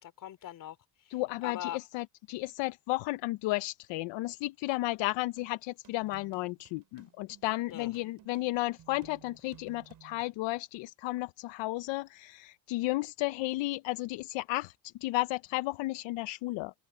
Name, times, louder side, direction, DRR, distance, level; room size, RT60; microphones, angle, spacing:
voice 1, 0.0-1.8 7.7-7.9, left 12 dB, 45° left, 3.6 m, -42 dB
voice 2, 1.1-14.7 15.0-16.7, left 20 dB, 75° left, 0.7 m, -33 dB
sound 1, 5.4-10.3, right 10 dB, 45° right, 5.9 m, -57 dB
open air
cardioid pair, 160°, 45 cm